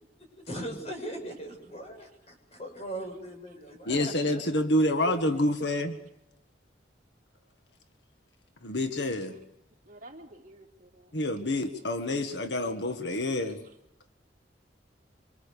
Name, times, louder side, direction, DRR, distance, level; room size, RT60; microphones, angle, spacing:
voice 1, 0.5-4.4 5.0-5.2, right 1 dB, 35° left, 3 dB, 7.6 m, -39 dB
voice 2, 3.9-6.0 8.6-9.3 11.1-13.6, left 1 dB, 75° left, 7 dB, 1.9 m, -28 dB
voice 3, 9.8-11.2 13.4-13.7, right 1 dB, 50° right, 1 dB, 3.1 m, -51 dB
26.0 x 26.0 x 6.9 m, 0.78 s
head